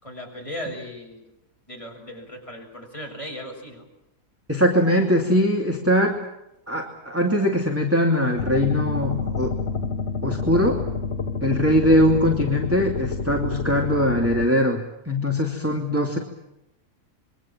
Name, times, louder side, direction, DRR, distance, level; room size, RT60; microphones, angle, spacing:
voice 1, 0.0-1.2 1.7-3.9, equal, 20° left, 0 dB, 7.4 m, -37 dB
voice 2, 4.5-6.2 6.7-9.5 10.2-10.8 11.4-16.2, equal, 10° right, 1 dB, 2.6 m, -21 dB
sound 1, 8.4-14.5, left 4 dB, 45° left, 1.7 m, -28 dB
27.5 x 23.5 x 7.5 m, 0.87 s
omnidirectional pair, 1.7 m